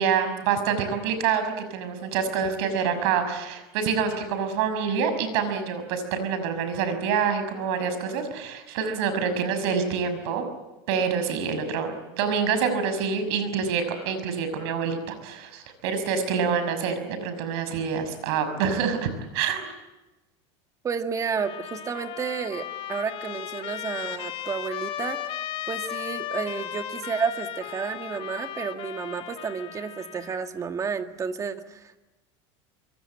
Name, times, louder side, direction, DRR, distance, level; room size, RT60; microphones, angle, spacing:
voice 1, 0.0-10.4 10.9-19.7, right 6 dB, 70° right, 9 dB, 6.0 m, -26 dB
voice 2, 20.8-25.3 25.7-32.0, right 6 dB, 20° right, 7 dB, 1.8 m, -31 dB
Trumpet, 21.3-30.5, left 11 dB, 40° left, 2.6 m, -36 dB
25.5 x 23.0 x 8.7 m, 1.1 s
supercardioid pair, 140°, 14 cm